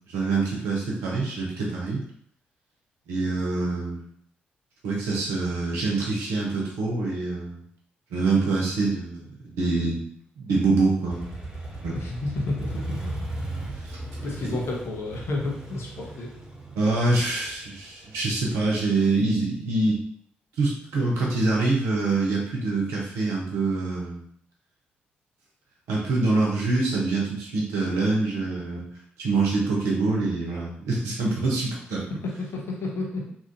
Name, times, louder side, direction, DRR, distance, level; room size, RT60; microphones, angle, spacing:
voice 1, 0.1-2.0 3.1-4.0 4.8-7.6 8.1-10.0 10.4-11.3 11.7-12.0 13.8-14.0 14.4-14.6 16.7-20.0 20.6-24.2 25.9-28.8 29.2-32.0, right 3 dB, 75° right, -3 dB, 0.8 m, -25 dB
Motorcycle, 11.1-18.7, right 1 dB, 15° right, 1.2 m, -36 dB
voice 2, 11.9-13.1 14.2-16.3 32.2-33.3, left 2 dB, 55° left, -1 dB, 0.9 m, -31 dB
2.8 x 2.5 x 2.7 m, 0.65 s
hypercardioid pair, 40°, 5 cm